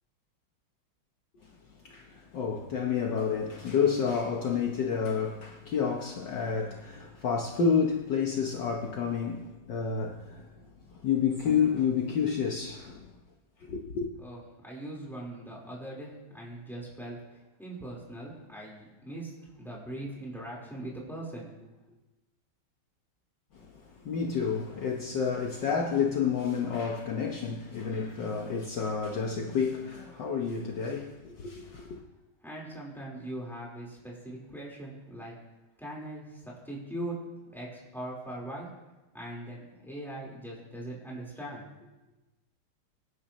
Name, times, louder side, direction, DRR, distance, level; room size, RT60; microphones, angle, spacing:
voice 1, 1.8-10.5 10.9-13.1 13.6-14.1 23.5-32.0, left 6 dB, 60° left, 1.6 m, -30 dB
voice 2, 14.2-21.7 32.4-35.3 35.8-37.2 37.5-38.7 39.1-41.7, right 1 dB, ahead, 4.0 m, -41 dB
25.0 x 10.0 x 3.1 m
omnidirectional pair, 2.3 m